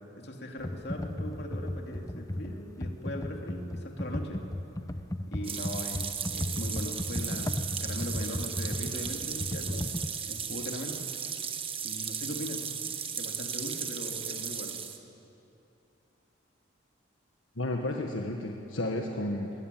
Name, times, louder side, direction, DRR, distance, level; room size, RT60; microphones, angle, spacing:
voice 1, 0.2-4.5 5.3-9.9 10.3-11.0 11.8-12.7 13.1-14.8, left 1 dB, 55° left, 2 dB, 2.8 m, -40 dB
Computer keyboard, 0.6-10.1, left 1 dB, 15° left, 0.7 m, -35 dB
sound 1, 5.4-15.0, right 7 dB, 25° right, 1.3 m, -36 dB
voice 2, 17.5-19.6, left 1 dB, 75° left, 2 dB, 1.6 m, -32 dB
21.0 x 19.5 x 9.3 m, 2.8 s
head